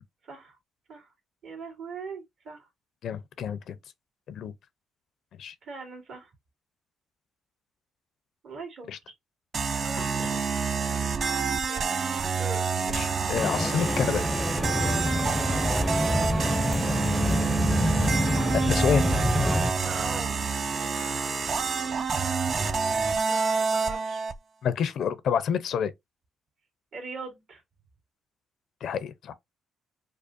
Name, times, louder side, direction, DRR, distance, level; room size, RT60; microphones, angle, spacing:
voice 1, 0.2-0.6 0.9-1.1 1.4-2.7 5.6-6.3 8.4-8.9 9.7-10.4 11.7-12.0 12.3-12.6 16.3-16.7 19.4-20.3 20.7-21.6 23.3-24.3 26.9-27.6, right 4 dB, 65° right, 1.9 m, -41 dB
voice 2, 3.0-3.8 4.3-4.5 5.4-5.5 8.9-9.0 12.9-14.2 18.5-19.1 24.6-25.9 28.8-29.3, left 7 dB, 70° left, 0.5 m, -28 dB
sound 1, 9.5-24.4, right 5 dB, 50° right, 0.5 m, -28 dB
sound 2, 13.3-19.7, left 1 dB, 5° left, 0.5 m, -27 dB
5.2 x 2.1 x 2.6 m
cardioid pair, 90°, 0 cm